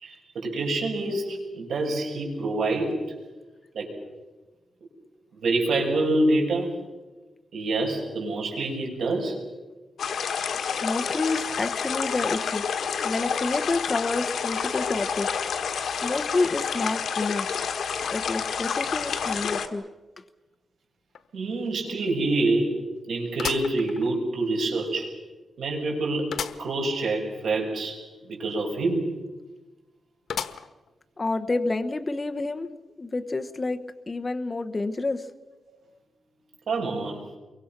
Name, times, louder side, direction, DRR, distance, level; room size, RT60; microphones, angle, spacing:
voice 1, 0.0-3.0 3.7-3.9 5.4-6.7 7.5-9.4 19.2-19.4 21.3-22.7 23.0-25.1 25.6-26.3 26.6-28.0 28.2-29.2 36.7-37.2, right 2 dB, 80° right, 1 dB, 6.3 m, -26 dB
sound 1, 10.0-19.7, left 6 dB, 70° left, 1.7 m, -29 dB
voice 2, 10.8-12.6 13.0-15.3 16.0-17.5 18.1-19.8 31.2-32.7 33.0-35.2, left 3 dB, 25° left, 6 dB, 1.0 m, -29 dB
sound 2, 21.1-21.2 21.7-21.8 23.4-24.5 25.0-25.1 26.3-26.7 27.1-27.2 27.4-27.5 30.3-30.9 31.5-31.6 32.6-32.7, left 7 dB, 90° left, 1.2 m, -34 dB
28.5 x 23.5 x 6.0 m, 1.2 s
wide cardioid pair, 145°, 0 cm